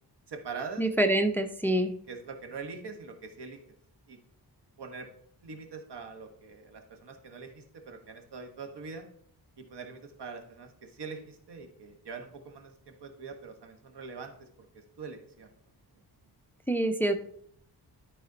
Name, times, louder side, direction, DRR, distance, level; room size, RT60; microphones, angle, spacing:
voice 1, 0.3-0.9 1.7-3.6 4.1-4.2 4.8-5.1 5.4-9.0 9.6-14.5 15.0-15.5, right 5 dB, 80° right, 5 dB, 1.4 m, -43 dB
voice 2, 0.8-1.9 16.7-17.1, right 1 dB, 5° left, 9 dB, 0.4 m, -26 dB
12.0 x 4.2 x 3.9 m, 0.67 s
wide cardioid pair, 120°, 40 cm